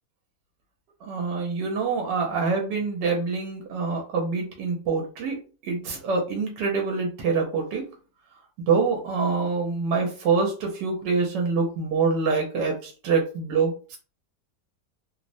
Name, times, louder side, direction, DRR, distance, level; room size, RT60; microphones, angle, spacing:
voice 1, 1.0-5.4 5.6-7.9 8.7-14.0, right 4 dB, 85° right, 0 dB, 1.3 m, -25 dB
3.1 x 2.0 x 2.5 m, 0.37 s
omnidirectional pair, 1.9 m